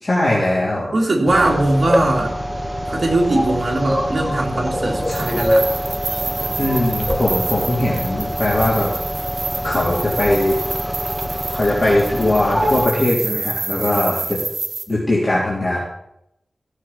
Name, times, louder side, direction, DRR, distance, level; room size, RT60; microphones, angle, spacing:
voice 1, 0.0-0.9 6.6-8.9 9.6-10.6 11.5-14.4 14.9-15.8, left 1 dB, 30° left, -6 dB, 3.5 m, -20 dB
voice 2, 0.9-2.3 2.9-5.6, right 2 dB, 50° right, -1 dB, 3.3 m, -20 dB
sound 1, 1.3-12.9, equal, 5° left, 1.3 m, -24 dB
sound 2, 5.0-14.9, right 4 dB, 75° right, 1.3 m, -29 dB
15.5 x 7.2 x 5.9 m, 0.81 s
wide cardioid pair, 90°, 0 cm